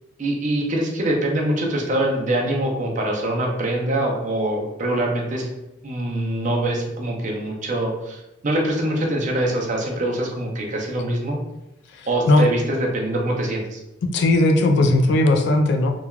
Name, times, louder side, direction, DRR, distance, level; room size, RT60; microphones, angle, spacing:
voice 1, 0.2-5.5 5.8-11.4 12.1-13.8, right 1 dB, 40° right, 0 dB, 0.5 m, -24 dB
voice 2, 11.9-12.4 14.1-15.9, left 2 dB, 60° left, 5 dB, 0.3 m, -17 dB
3.1 x 2.2 x 2.3 m, 0.92 s
head